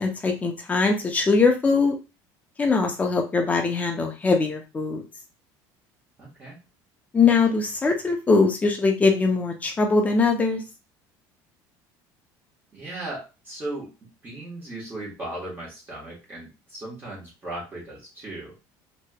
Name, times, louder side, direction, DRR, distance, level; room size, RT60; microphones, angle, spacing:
voice 1, 0.0-1.9 2.6-5.0 7.1-10.6, left 4 dB, 15° left, 3 dB, 0.6 m, -21 dB
voice 2, 6.2-6.6 12.7-18.6, right 2 dB, 25° right, -5 dB, 1.3 m, -37 dB
3.2 x 3.0 x 2.3 m, 0.29 s
cardioid pair, 145°, 9 cm